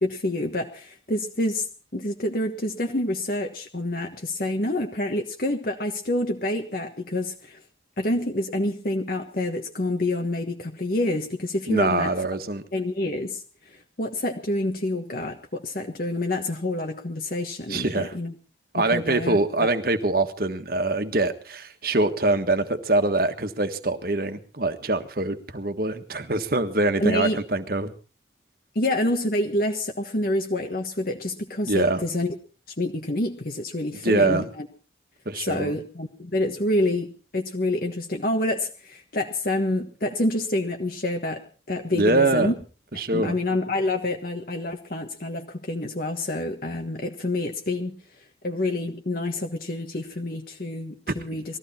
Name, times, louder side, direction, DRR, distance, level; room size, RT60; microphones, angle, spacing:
voice 1, 0.0-1.7 1.9-7.6 8.0-12.1 12.7-18.3 18.7-19.7 27.0-27.4 28.7-32.3 32.8-34.7 35.4-42.5 43.1-48.0 48.4-51.6, left 1 dB, 50° left, 3 dB, 1.4 m, -27 dB
voice 2, 11.7-12.6 17.7-18.1 18.7-27.9 31.7-32.0 34.0-34.5 35.2-35.7 41.9-42.5 43.0-43.4, right 2 dB, 55° right, 8 dB, 1.5 m, -24 dB
20.5 x 14.5 x 4.3 m, 0.37 s
head